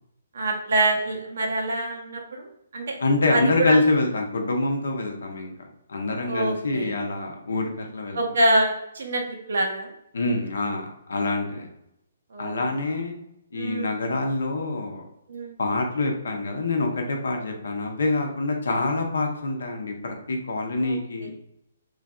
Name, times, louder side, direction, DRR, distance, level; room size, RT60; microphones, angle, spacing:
voice 1, 0.3-2.9 3.3-3.8 6.3-6.9 8.1-9.2 9.5-9.9 12.3-12.7 13.5-14.0 15.3-15.6 20.8-21.3, right 1 dB, 65° right, 1 dB, 0.8 m, -25 dB
voice 2, 3.0-5.5 5.9-8.2 10.1-11.7 12.4-13.2 13.5-15.0 15.6-21.3, left 2 dB, 70° left, 2 dB, 0.7 m, -26 dB
3.2 x 2.5 x 2.3 m, 0.80 s
figure-of-eight pair, 135°, 0 cm